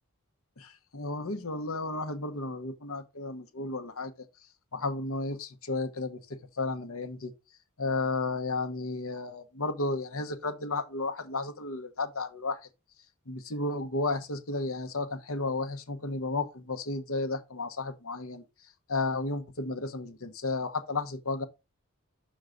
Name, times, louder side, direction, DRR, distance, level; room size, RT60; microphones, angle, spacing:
voice 1, 0.6-4.1 4.7-6.2 6.6-7.3 7.8-12.6 13.3-18.4 18.9-21.5, left 3 dB, 70° left, 1.2 m, -33 dB
6.4 x 6.3 x 3.9 m
head